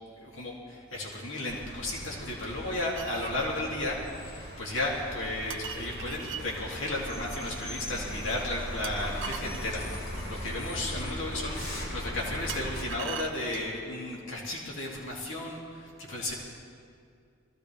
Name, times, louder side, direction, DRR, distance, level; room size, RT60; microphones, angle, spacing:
voice 1, 0.2-9.8 10.3-16.3, left 2 dB, 65° left, -3 dB, 2.8 m, -34 dB
sound 1, 1.5-12.8, equal, 80° left, 4.1 m, -39 dB
sound 2, 2.9-3.5 5.5-6.4 8.8-10.3 12.5-13.8, right 8 dB, 65° right, 0.9 m, -40 dB
22.0 x 15.5 x 3.4 m, 2.3 s
head